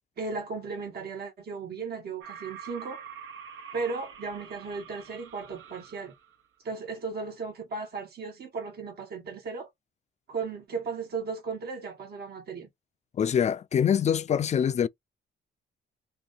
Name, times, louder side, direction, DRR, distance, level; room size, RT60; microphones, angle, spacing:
voice 1, 0.2-3.0 3.7-6.1 6.6-9.7 10.3-12.7, right 4 dB, 55° right, 1.3 m, -36 dB
sound 1, 2.2-6.4, right 7 dB, 80° right, 1.2 m, -46 dB
voice 2, 13.1-14.9, left 8 dB, 35° left, 0.4 m, -24 dB
2.9 x 2.7 x 3.9 m
cardioid pair, 90°, 20 cm